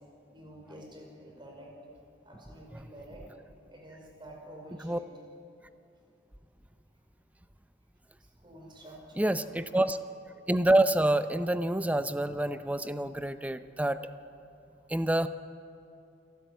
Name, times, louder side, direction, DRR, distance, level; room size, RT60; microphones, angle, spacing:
voice 1, 0.3-1.7 2.2-3.2 3.7-5.1 8.4-9.4 14.7-14.8, right 1 dB, 25° right, -1 dB, 5.2 m, -49 dB
voice 2, 9.2-10.0 10.5-14.0 14.9-15.3, right 1 dB, 10° right, 11 dB, 0.7 m, -27 dB
28.0 x 13.0 x 9.4 m, 2.6 s
head